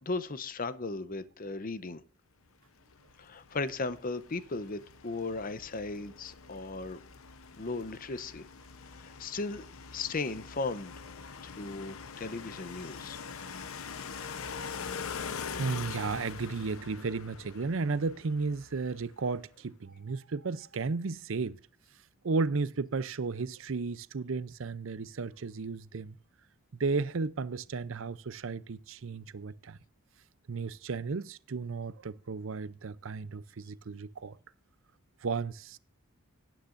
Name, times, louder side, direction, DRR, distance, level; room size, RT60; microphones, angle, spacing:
voice 1, 0.0-2.0 3.2-7.0 7.5-8.5 8.9-9.7 9.9-10.9 11.4-13.2, left 3 dB, 40° left, 0.7 m, -36 dB
sound 1, 2.9-19.1, left 6 dB, 80° left, 0.8 m, -43 dB
voice 2, 13.3-13.7 15.6-21.6 22.2-26.2 26.8-29.8 30.5-34.4 35.2-35.8, right 4 dB, 65° right, 0.6 m, -34 dB
18.5 x 9.3 x 2.6 m
head